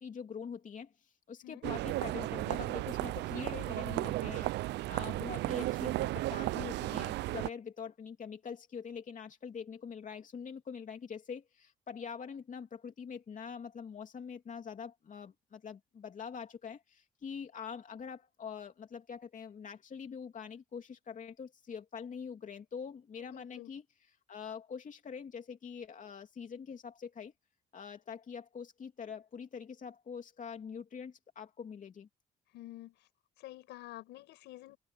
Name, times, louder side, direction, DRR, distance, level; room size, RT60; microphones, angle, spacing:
voice 1, 0.0-4.5 4.9-23.8 24.3-27.3 27.7-32.1, left 6 dB, 50° left, 2.9 m, -44 dB
sound 1, 1.6-7.5, right 17 dB, 80° right, 0.5 m, -34 dB
voice 2, 23.2-23.7 32.5-33.0 33.4-34.8, left 16 dB, 90° left, 5.5 m, -49 dB
cardioid pair, 85°, 17 cm